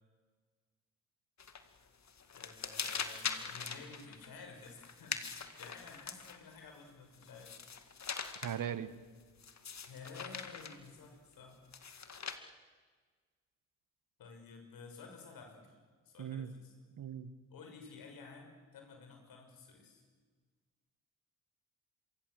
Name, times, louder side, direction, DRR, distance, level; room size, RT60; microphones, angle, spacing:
sound 1, 1.4-1.8 2.1-6.6 7.1-8.7 9.4-10.9 11.7-12.4, left 6 dB, 50° left, 2.3 m, -42 dB
voice 1, 2.3-7.6 9.9-11.6 14.2-15.8 16.0-16.7 17.5-20.0, left 4 dB, 75° left, 4 dB, 6.3 m, -53 dB
voice 2, 8.4-8.9 16.2-16.5 17.0-17.3, right 9 dB, 65° right, 13 dB, 1.7 m, -38 dB
27.5 x 23.5 x 8.0 m, 1.5 s
supercardioid pair, 45°, 35 cm